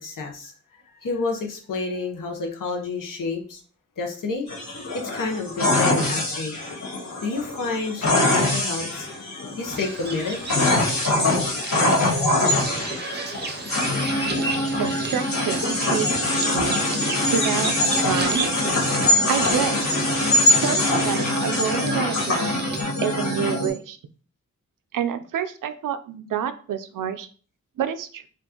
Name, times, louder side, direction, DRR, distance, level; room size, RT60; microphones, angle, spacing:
voice 1, 0.0-3.6 4.0-4.5 4.9-6.5 7.2-9.1 9.6-10.4, left 4 dB, 85° left, 2 dB, 0.9 m, -29 dB
sound 1, 4.5-23.7, left 1 dB, 60° left, 1.5 m, -23 dB
Bird vocalization bird call bird song, 9.7-22.8, right 3 dB, 35° right, 0.6 m, -34 dB
voice 2, 14.8-16.8 17.3-18.5 19.2-19.8 20.6-24.0 24.9-27.3 27.8-28.2, right 8 dB, 85° right, 10 dB, 0.5 m, -28 dB
4.4 x 2.5 x 2.8 m, 0.41 s
wide cardioid pair, 145°, 31 cm